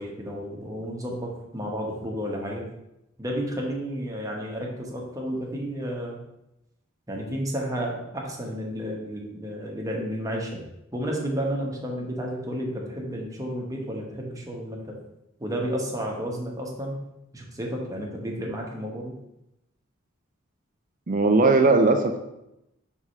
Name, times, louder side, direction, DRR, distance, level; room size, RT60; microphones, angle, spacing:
voice 1, 0.0-2.7 3.2-6.2 7.1-10.6 10.9-14.9 15.4-17.0 17.3-19.1, equal, 15° right, -1 dB, 1.0 m, -31 dB
voice 2, 21.1-22.2, right 3 dB, 40° right, 5 dB, 0.5 m, -19 dB
4.8 x 3.6 x 5.5 m, 0.87 s
head